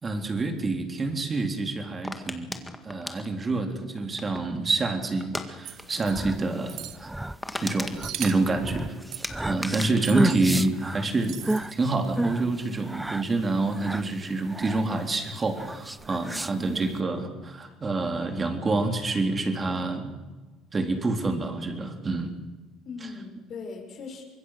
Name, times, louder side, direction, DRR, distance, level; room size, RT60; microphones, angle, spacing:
voice 1, 0.0-2.6 2.8-7.1 7.6-9.0 9.4-11.4 11.7-20.2 20.7-22.4 23.0-23.1, right 3 dB, 25° right, 5 dB, 3.6 m, -27 dB
sound 1, 2.0-4.6 5.2-5.5 5.8-6.0 6.3-6.4 6.8-6.9 7.1-8.8 9.2-11.3 11.6-12.0, left 1 dB, 10° left, 1.9 m, -37 dB
sound 2, 5.6-6.1 6.7-7.0 8.0-8.5 9.1-9.3 10.0-10.4 11.2-11.7, right 12 dB, 65° right, 1.4 m, -38 dB
sound 3, 5.8-17.0, right 1 dB, 10° right, 0.7 m, -32 dB
voice 2, 22.8-24.2, left 4 dB, 45° left, 3 dB, 6.4 m, -40 dB
24.5 x 21.5 x 6.6 m, 1.2 s
cardioid pair, 110°, 0 cm